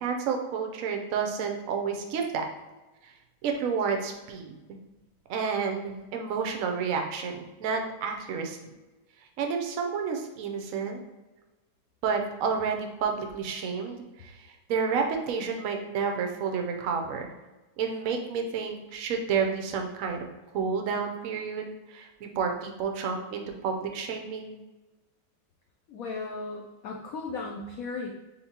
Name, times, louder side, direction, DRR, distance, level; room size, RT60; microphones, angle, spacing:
voice 1, 0.0-2.5 3.4-4.5 5.3-8.6 9.4-11.0 12.0-14.3 14.7-17.3 17.8-20.2 20.5-24.6, right 6 dB, 80° right, 3 dB, 0.7 m, -30 dB
voice 2, 25.9-28.1, left 3 dB, 85° left, 0 dB, 0.7 m, -36 dB
4.3 x 3.6 x 2.8 m, 1.1 s
omnidirectional pair, 2.1 m